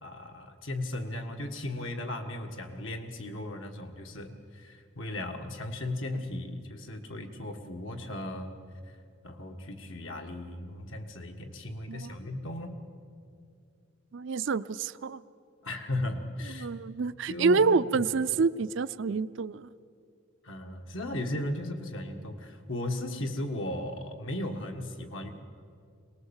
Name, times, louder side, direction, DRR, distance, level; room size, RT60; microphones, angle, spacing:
voice 1, 0.0-8.6 9.2-12.8 15.6-16.7 17.3-17.6 17.9-18.0 20.4-25.3, left 1 dB, 80° left, 4 dB, 1.7 m, -36 dB
voice 2, 14.1-15.2 16.6-19.7, right 4 dB, 70° right, 15 dB, 0.5 m, -27 dB
22.5 x 19.0 x 7.2 m, 2.4 s
head